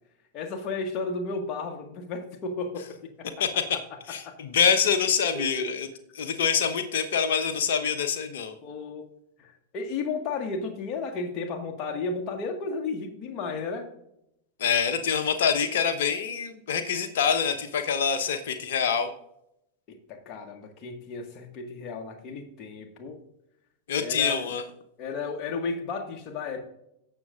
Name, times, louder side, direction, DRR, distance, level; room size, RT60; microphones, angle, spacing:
voice 1, 0.3-3.3 4.2-4.3 5.3-5.7 8.6-9.1 9.4-13.9 19.9-23.2 24.0-24.5 25.0-26.6, left 4 dB, 35° left, 3 dB, 1.6 m, -33 dB
voice 2, 3.4-3.8 4.1-5.9 6.1-8.5 14.6-19.1 23.9-24.6, left 7 dB, 55° left, 8 dB, 1.0 m, -25 dB
17.5 x 6.7 x 2.5 m, 0.80 s
figure-of-eight pair, 90°, 0 cm